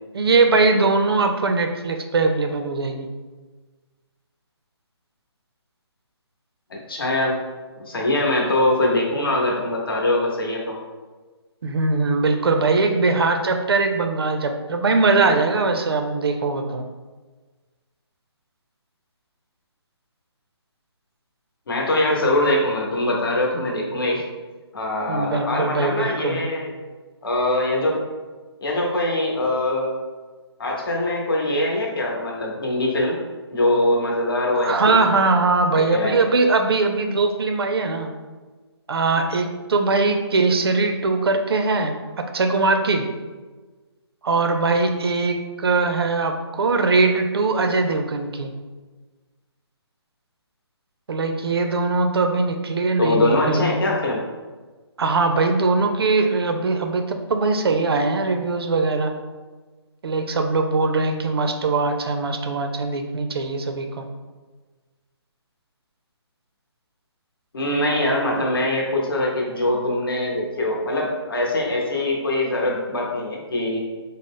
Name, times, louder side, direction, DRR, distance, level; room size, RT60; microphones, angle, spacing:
voice 1, 0.1-3.1 11.6-16.8 25.1-26.4 34.6-38.1 38.9-43.1 44.2-48.5 51.1-53.7 55.0-59.1 60.0-64.1, right 3 dB, 60° right, 5 dB, 0.4 m, -21 dB
voice 2, 6.7-7.4 7.9-10.8 21.7-24.2 24.7-26.7 27.2-28.0 28.6-29.9 30.6-33.2 33.5-35.0 35.7-36.2 53.0-54.2 67.5-73.8, left 1 dB, 55° left, -1 dB, 0.9 m, -22 dB
3.8 x 2.0 x 3.6 m, 1.3 s
hypercardioid pair, 170°, 14 cm